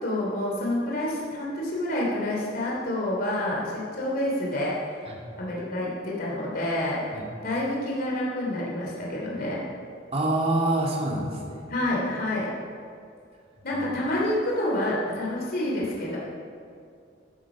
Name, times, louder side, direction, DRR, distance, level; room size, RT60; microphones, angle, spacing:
voice 1, 0.0-5.1 5.4-7.0 7.4-9.6 11.7-12.5 13.6-16.2, left 1 dB, 55° left, -4 dB, 2.9 m, -28 dB
voice 2, 10.1-11.6 13.7-13.8, right 2 dB, 35° right, -3 dB, 2.7 m, -26 dB
13.5 x 12.0 x 5.0 m, 2.4 s
head